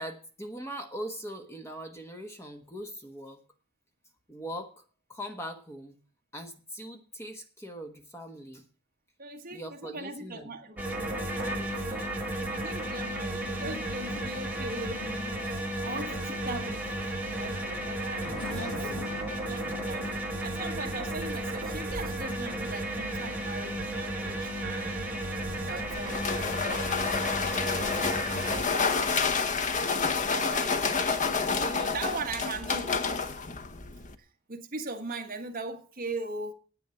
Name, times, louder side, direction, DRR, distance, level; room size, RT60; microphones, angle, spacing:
voice 1, 0.0-3.4 4.3-4.8 5.1-6.0 6.3-8.6 9.5-10.5, equal, 10° left, 1.3 m, -41 dB
voice 2, 9.2-12.1 12.4-17.0 17.3-25.0 25.3-29.4 29.8-32.9 34.2-36.5, right 3 dB, 40° right, 1.4 m, -40 dB
sound 1, 10.8-28.6, right 1 dB, 10° right, 2.5 m, -33 dB
Race car auto racing / Accelerating revving vroom, 13.2-22.3, left 2 dB, 75° left, 1.7 m, -45 dB
sound 2, 25.4-34.1, left 5 dB, 35° left, 0.8 m, -29 dB
9.8 x 9.0 x 7.1 m
head